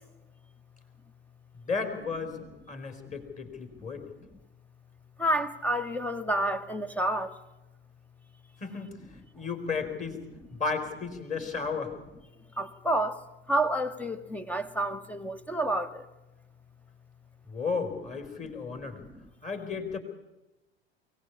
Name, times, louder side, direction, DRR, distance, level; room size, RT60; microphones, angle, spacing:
voice 1, 1.5-4.1 8.6-10.2 10.5-11.9 17.5-19.0 19.4-20.0, left 4 dB, 20° left, 3.7 m, -34 dB
voice 2, 5.2-7.3 12.6-13.2 13.5-16.0, right 1 dB, 5° left, 1.1 m, -29 dB
22.5 x 17.0 x 8.4 m
figure-of-eight pair, 75°, 32 cm